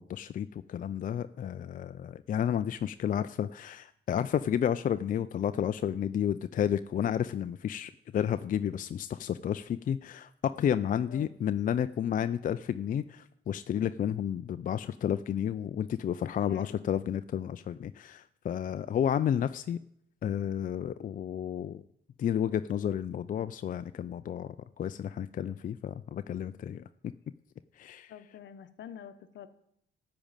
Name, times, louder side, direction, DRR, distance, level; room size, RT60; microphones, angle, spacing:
voice 1, 0.0-19.8 20.2-21.8 22.2-26.8 27.8-28.1, left 9 dB, 45° left, 12 dB, 0.4 m, -31 dB
voice 2, 10.9-11.3 16.5-16.9 28.1-29.5, left 9 dB, 70° left, 12 dB, 0.9 m, -47 dB
13.5 x 5.2 x 8.9 m, 0.74 s
cardioid pair, 90°, 20 cm